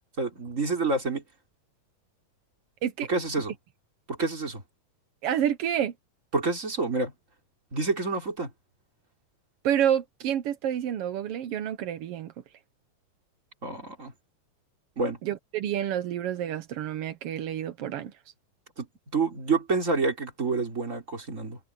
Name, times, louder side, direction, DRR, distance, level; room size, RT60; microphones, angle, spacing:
voice 1, 0.2-1.2 3.1-3.5 4.1-4.6 6.3-7.1 7.7-8.5 13.6-14.1 15.0-15.2 18.8-18.9 19.1-21.6, right 3 dB, 20° right, 3.7 m, -28 dB
voice 2, 5.2-5.9 9.6-12.3 15.2-18.1, right 10 dB, 75° right, 1.3 m, -28 dB
omnidirectional pair, 3.8 m